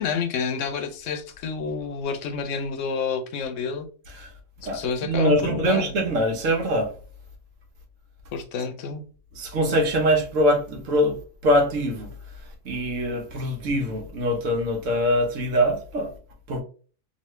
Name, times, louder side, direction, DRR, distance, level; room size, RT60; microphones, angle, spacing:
voice 1, 0.0-3.9 4.7-5.9 8.3-9.0, left 6 dB, 75° left, 0.9 m, -29 dB
voice 2, 4.6-6.9 9.3-11.2 11.4-12.1 12.6-16.1 16.5-16.6, equal, 75° right, 1.3 m, -23 dB
3.1 x 2.4 x 3.1 m
omnidirectional pair, 1.3 m